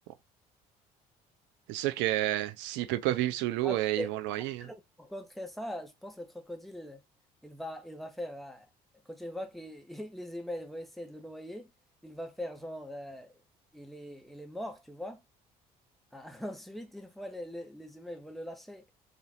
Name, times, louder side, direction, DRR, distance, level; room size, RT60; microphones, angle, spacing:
voice 1, 1.7-4.7, right 15 dB, 70° right, 0.5 m, -30 dB
voice 2, 3.6-4.1 4.6-7.0 7.4-8.7 9.1-11.7 12.0-13.3 13.7-15.2 16.1-18.8, equal, ahead, 1.4 m, -41 dB
4.1 x 2.7 x 4.0 m
hypercardioid pair, 55°, 20 cm